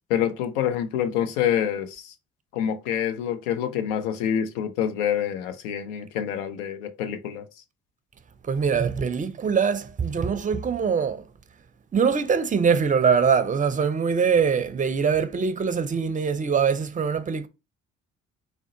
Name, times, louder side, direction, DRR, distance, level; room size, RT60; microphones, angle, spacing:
voice 1, 0.1-2.1 2.5-7.5, left 9 dB, 80° left, 0.5 m, -26 dB
voice 2, 8.4-11.2 11.9-17.5, right 6 dB, 20° right, 0.5 m, -23 dB
3.5 x 2.1 x 2.6 m
hypercardioid pair, 45°, 38 cm